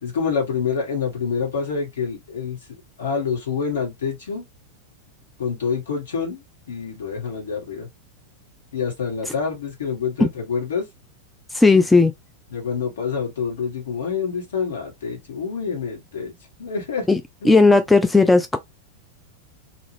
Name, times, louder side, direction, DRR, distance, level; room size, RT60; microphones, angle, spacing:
voice 1, 0.0-2.6 3.0-4.4 5.4-7.9 8.7-10.9 12.5-16.3 16.6-17.1 17.4-17.7, left 6 dB, 65° left, 1.4 m, -27 dB
voice 2, 11.5-12.1 17.1-17.2 17.5-18.6, left 3 dB, 5° left, 0.3 m, -15 dB
2.5 x 2.4 x 3.1 m
figure-of-eight pair, 90°, 0 cm